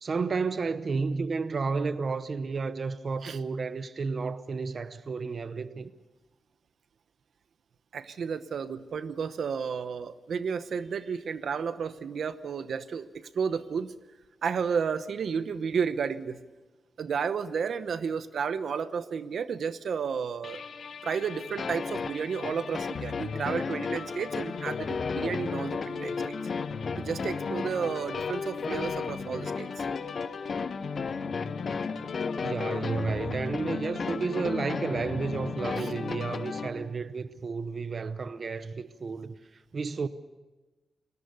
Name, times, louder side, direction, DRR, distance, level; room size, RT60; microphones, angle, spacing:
voice 1, 0.0-5.9 32.4-39.3 39.7-40.1, right 4 dB, 45° right, 0.8 m, -32 dB
voice 2, 7.9-13.9 14.4-16.4 17.0-20.6 21.0-26.4 27.0-29.7 35.8-35.9, right 6 dB, 70° right, 0.9 m, -32 dB
sound 1, 20.4-36.7, left 5 dB, 65° left, 1.8 m, -37 dB
sound 2, 21.6-36.4, left 5 dB, 45° left, 0.8 m, -35 dB
29.5 x 20.5 x 6.8 m
wide cardioid pair, 165°, 0 cm